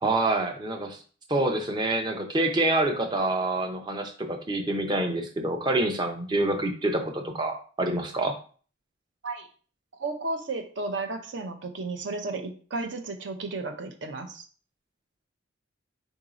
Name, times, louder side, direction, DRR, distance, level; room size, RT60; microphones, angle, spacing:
voice 1, 0.0-1.0 1.3-8.4, right 2 dB, 20° right, 4 dB, 0.6 m, -27 dB
voice 2, 10.0-14.5, right 3 dB, 60° right, 6 dB, 0.6 m, -33 dB
3.9 x 2.7 x 4.8 m, 0.42 s
head